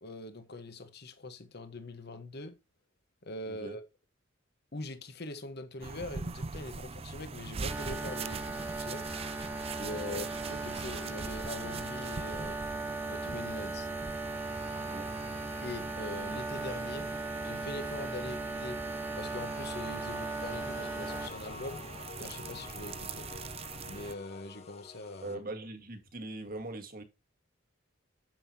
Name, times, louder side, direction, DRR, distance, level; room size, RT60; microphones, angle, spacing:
voice 1, 0.0-2.6 3.2-3.8 4.7-9.1 9.8-12.6 13.1-13.9 15.6-17.1 17.4-18.8 19.2-21.8 22.2-23.3 23.9-25.4, left 2 dB, 55° left, 1.2 m, -42 dB
sound 1, 5.8-24.2, right 4 dB, 30° right, 0.4 m, -43 dB
sound 2, 7.7-21.3, right 2 dB, 10° right, 1.3 m, -38 dB
voice 2, 14.8-15.1 25.2-27.0, right 2 dB, 45° right, 1.6 m, -41 dB
sound 3, 19.3-25.3, left 5 dB, 30° left, 0.9 m, -48 dB
8.9 x 7.7 x 2.8 m
head